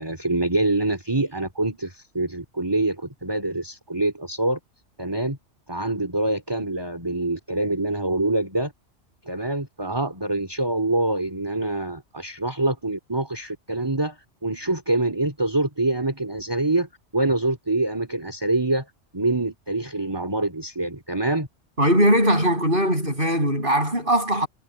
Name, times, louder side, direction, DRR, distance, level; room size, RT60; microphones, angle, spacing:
voice 1, 0.0-4.6 5.0-5.4 5.7-8.7 9.3-14.2 14.4-16.9 17.1-18.9 19.1-21.5, right 2 dB, 20° right, 3.5 m, -25 dB
voice 2, 21.8-24.5, equal, 45° right, 7.8 m, -20 dB
omnidirectional pair, 1.2 m